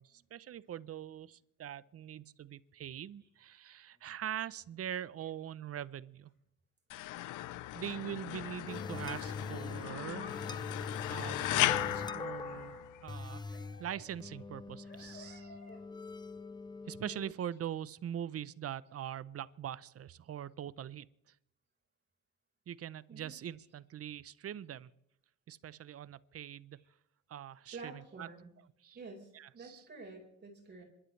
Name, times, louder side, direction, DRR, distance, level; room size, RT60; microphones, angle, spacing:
voice 1, 0.0-6.3 7.7-10.3 11.1-13.5 13.8-15.5 16.9-21.1 22.7-24.9 25.5-26.8 27.3-28.3 28.8-29.0 29.3-29.8, right 10 dB, 50° right, 18 dB, 0.7 m, -43 dB
sound 1, 0.7-0.8 1.1-1.2 3.9-5.2 5.7-5.8 6.3-6.4 8.6-9.1 9.5-9.6 10.0-10.5 10.8-10.9 11.1-11.5 11.8-12.3 13.4-15.8 16.1-16.2, left 2 dB, 40° left, 4.4 m, -57 dB
sound 2, 6.9-13.2, left 15 dB, 85° left, 0.6 m, -36 dB
sound 3, 8.7-17.3, left 3 dB, 15° left, 0.4 m, -43 dB
voice 2, 23.1-23.4 26.7-26.9 27.7-28.5 28.9-30.8, right 3 dB, 35° right, -1 dB, 4.6 m, -49 dB
26.5 x 12.5 x 3.3 m, 0.81 s
cardioid pair, 90°, 30 cm